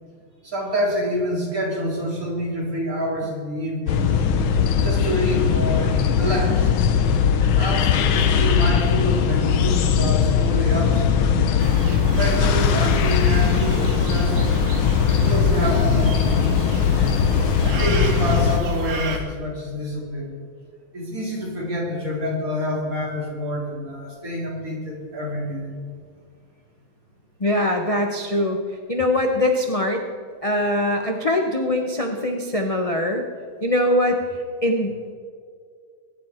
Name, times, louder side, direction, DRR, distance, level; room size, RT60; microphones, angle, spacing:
voice 1, 0.4-4.2 4.7-6.8 7.5-11.1 12.0-14.3 15.1-16.5 17.6-20.3 20.9-25.7, equal, 40° right, -4 dB, 3.9 m, -27 dB
sound 1, 3.9-18.6, left 7 dB, 75° left, 1.7 m, -19 dB
sound 2, 11.6-19.2, right 1 dB, 85° right, 2.4 m, -30 dB
voice 2, 27.4-28.6 28.9-30.0 30.4-33.2 33.6-34.2 34.6-34.9, left 1 dB, 35° left, 2 dB, 0.5 m, -22 dB
22.5 x 10.0 x 4.5 m, 2.1 s
omnidirectional pair, 2.3 m